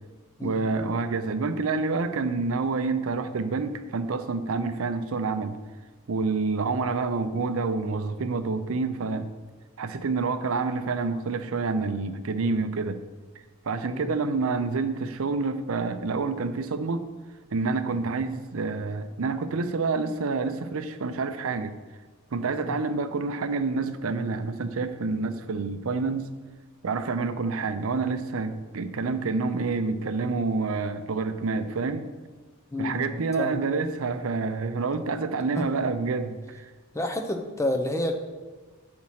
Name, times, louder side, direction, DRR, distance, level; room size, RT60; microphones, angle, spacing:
voice 1, 0.4-5.6 6.1-9.3 9.8-13.0 13.6-17.1 17.5-21.7 22.3-26.3 26.8-32.1 32.8-36.7, right 4 dB, 70° right, 10 dB, 0.5 m, -28 dB
voice 2, 32.7-33.6 35.6-35.7 36.9-38.1, left 1 dB, 15° left, 5 dB, 0.5 m, -29 dB
7.5 x 4.3 x 5.7 m, 1.3 s
head